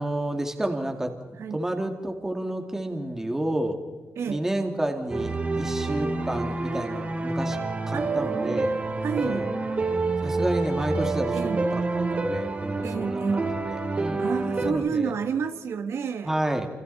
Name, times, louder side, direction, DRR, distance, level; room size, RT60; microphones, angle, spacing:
voice 1, 0.0-3.8 4.3-7.6 7.9-8.8 9.2-9.5 10.2-11.8 12.1-13.4 13.7-14.3 14.6-15.1 16.3-16.7, right 1 dB, 10° right, 4 dB, 2.2 m, -30 dB
sound 1, 5.1-14.7, right 3 dB, 30° right, 2.8 m, -28 dB
voice 2, 7.9-9.5 11.3-11.6 12.8-13.5 14.2-16.3, right 6 dB, 70° right, 6 dB, 1.5 m, -30 dB
29.5 x 28.5 x 4.2 m, 1.4 s
wide cardioid pair, 165°, 5 cm